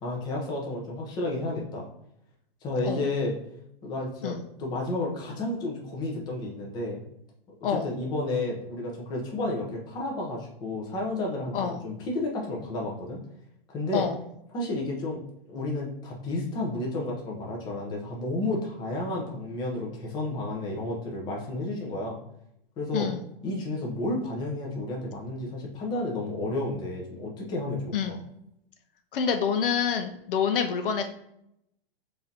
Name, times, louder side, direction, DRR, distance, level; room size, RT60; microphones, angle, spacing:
voice 1, 0.0-1.9 2.6-3.3 3.8-7.0 7.6-13.2 13.7-14.1 14.5-15.2 15.5-22.2 22.8-23.1 23.4-28.2, left 2 dB, 15° left, -2 dB, 0.6 m, -31 dB
voice 2, 29.1-31.1, left 7 dB, 65° left, 7 dB, 0.6 m, -27 dB
4.8 x 2.7 x 2.7 m, 0.78 s
hypercardioid pair, 155°, 30 cm